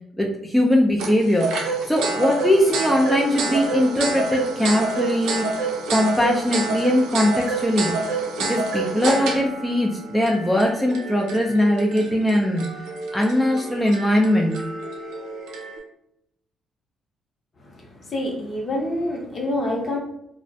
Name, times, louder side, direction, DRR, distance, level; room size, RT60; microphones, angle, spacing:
voice 1, 0.2-1.5 1.9-5.4 5.9-7.9 8.4-12.6 13.1-14.5, left 1 dB, 5° left, -1 dB, 0.4 m, -20 dB
sound 1, 1.0-15.8, right 3 dB, 90° right, 0.5 m, -28 dB
voice 2, 17.6-20.0, left 1 dB, 45° left, 0 dB, 0.7 m, -27 dB
2.4 x 2.1 x 2.6 m, 0.76 s
cardioid pair, 90°, 0 cm